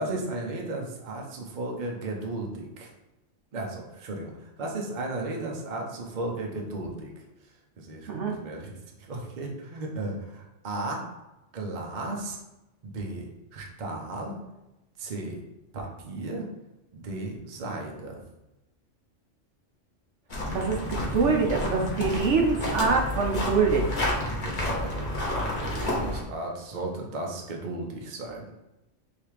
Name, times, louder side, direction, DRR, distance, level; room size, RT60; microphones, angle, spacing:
voice 1, 0.0-2.9 3.5-7.1 7.8-11.0 11.5-12.4 12.8-14.4 15.0-15.4 15.7-16.5 16.9-18.2 24.3-28.5, right 2 dB, 45° right, 0 dB, 0.8 m, -35 dB
sound 1, 20.3-26.2, left 1 dB, 40° left, 0.9 m, -30 dB
voice 2, 20.5-23.9, right 4 dB, 70° right, 1 dB, 1.0 m, -24 dB
3.4 x 2.8 x 4.7 m, 0.98 s
omnidirectional pair, 1.3 m